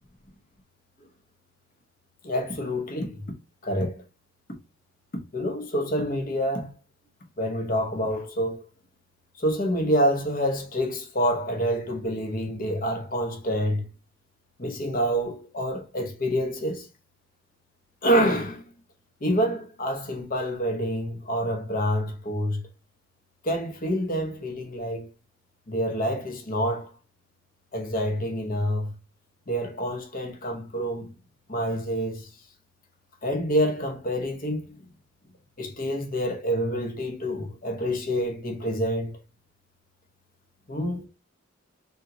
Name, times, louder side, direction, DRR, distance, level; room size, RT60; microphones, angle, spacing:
voice 1, 2.2-3.2 3.6-4.0 5.3-6.7 7.4-8.6 9.4-13.9 14.6-16.9 18.0-18.6 19.2-22.6 23.4-25.1 25.7-26.9 27.7-28.9 29.5-31.1 31.5-32.3 33.2-34.7 35.6-39.1 40.7-41.1, equal, 40° left, 1.0 m, -27 dB
4.0 x 3.6 x 2.8 m
head